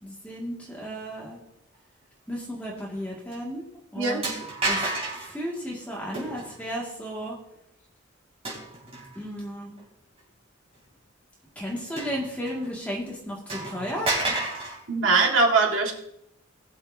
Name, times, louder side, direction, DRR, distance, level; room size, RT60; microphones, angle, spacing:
voice 1, 0.0-1.4 2.3-4.3 4.7-4.9 5.3-7.4 9.2-9.8 11.6-14.4, equal, 5° left, -4 dB, 2.1 m, -34 dB
sound 1, 2.8-3.0 3.3-3.4 4.2-5.3 6.1-6.6 8.4-9.2 9.8-9.9 12.0-12.7 13.0-13.1 13.5-14.8, right 2 dB, 30° right, 3.4 m, -30 dB
voice 2, 14.9-15.9, right 3 dB, 70° right, 1 dB, 1.9 m, -21 dB
19.0 x 7.0 x 2.8 m, 0.77 s
head